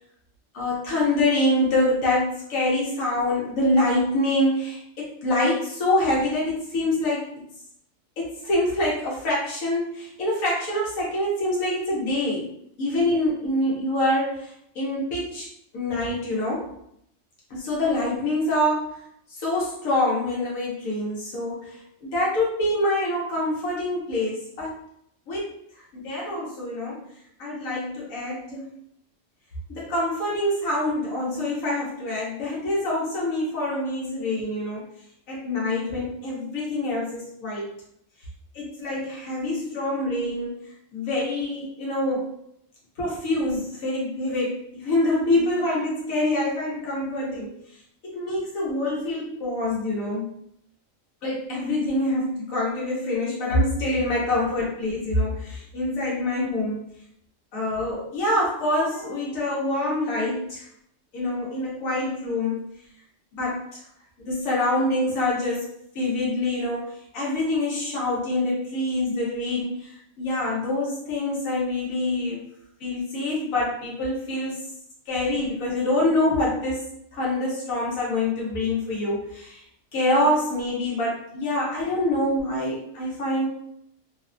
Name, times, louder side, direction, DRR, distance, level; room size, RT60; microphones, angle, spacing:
voice 1, 0.5-7.3 8.2-12.5 12.8-15.5 15.7-16.7 17.5-19.0 19.4-24.7 25.3-25.5 25.9-27.0 27.4-28.7 29.7-34.9 35.3-37.7 38.5-40.6 40.9-42.3 43.0-47.5 48.0-50.3 51.2-56.8 57.5-60.7 61.1-62.6 63.3-63.8 64.2-65.7 65.9-72.4 72.8-74.6 75.1-76.8 77.1-79.6 79.9-83.5, left 1 dB, 85° left, -5 dB, 1.2 m, -25 dB
3.3 x 2.1 x 2.5 m, 0.73 s
omnidirectional pair, 1.4 m